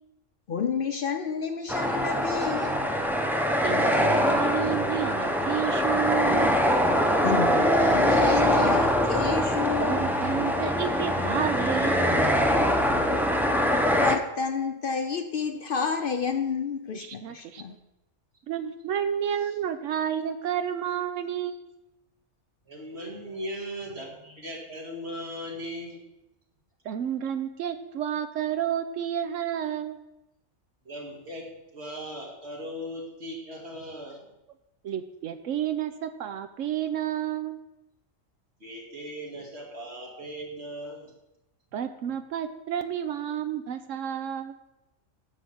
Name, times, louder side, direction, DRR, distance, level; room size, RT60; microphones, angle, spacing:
voice 1, 0.5-2.8 7.2-10.0 14.0-17.7, left 6 dB, 55° left, 7 dB, 0.7 m, -30 dB
sound 1, 1.7-14.2, equal, ahead, 0.5 m, -23 dB
voice 2, 3.6-6.6 9.7-12.5 16.9-17.6 18.5-21.7 26.8-30.0 34.8-37.6 41.7-44.6, right 9 dB, 85° right, 9 dB, 1.0 m, -31 dB
voice 3, 22.7-26.0 30.8-34.3 38.6-41.1, equal, 60° right, -1 dB, 2.4 m, -38 dB
10.0 x 5.2 x 7.1 m, 0.92 s
omnidirectional pair, 1.3 m